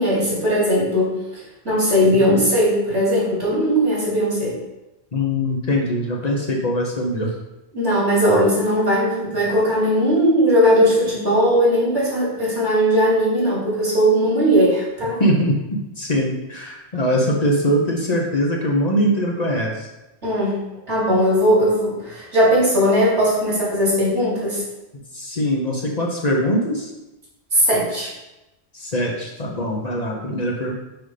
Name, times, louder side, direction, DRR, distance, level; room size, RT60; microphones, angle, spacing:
voice 1, 0.0-4.5 7.7-15.2 20.2-20.6 20.9-24.6 27.5-28.1, equal, 80° right, -7 dB, 2.9 m, -18 dB
voice 2, 5.1-7.3 15.2-19.9 25.1-26.9 28.7-30.8, equal, 40° left, -1 dB, 0.9 m, -22 dB
6.0 x 5.3 x 3.3 m, 0.97 s
omnidirectional pair, 1.1 m